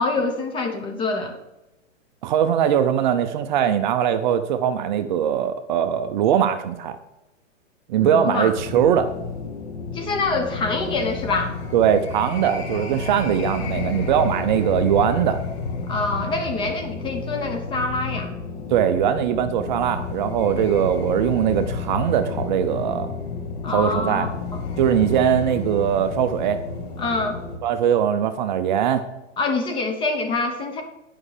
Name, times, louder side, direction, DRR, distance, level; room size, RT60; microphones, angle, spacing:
voice 1, 0.0-1.4 8.0-8.5 9.9-11.5 15.9-18.3 23.6-24.6 27.0-27.4 29.4-30.8, left 3 dB, 15° left, 5 dB, 0.7 m, -25 dB
voice 2, 2.2-7.0 7.9-9.1 11.7-15.4 18.7-23.1 23.7-24.3 24.8-26.6 27.6-29.0, right 9 dB, 40° right, 10 dB, 0.6 m, -21 dB
sound 1, 8.5-27.6, left 4 dB, 55° left, 1.4 m, -31 dB
9.6 x 5.4 x 4.9 m, 0.97 s
hypercardioid pair, 145°, 37 cm